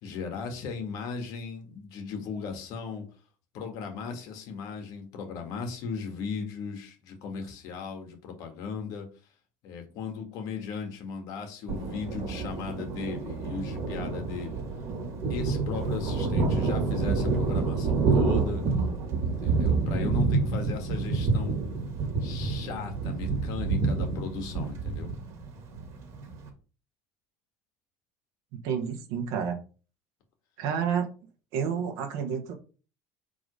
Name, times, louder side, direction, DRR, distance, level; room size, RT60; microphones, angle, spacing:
voice 1, 0.0-3.0 3.5-9.1 9.6-14.6 15.3-18.6 19.2-21.6 22.2-25.1, left 5 dB, 60° left, 4 dB, 1.8 m, -37 dB
Thunder, 11.7-26.5, right 4 dB, 45° right, 1.8 m, -28 dB
voice 2, 28.5-29.6 30.6-31.1 31.5-32.5, right 7 dB, 60° right, 4 dB, 1.2 m, -29 dB
4.9 x 3.9 x 5.2 m, 0.36 s
cardioid pair, 150°, 7 cm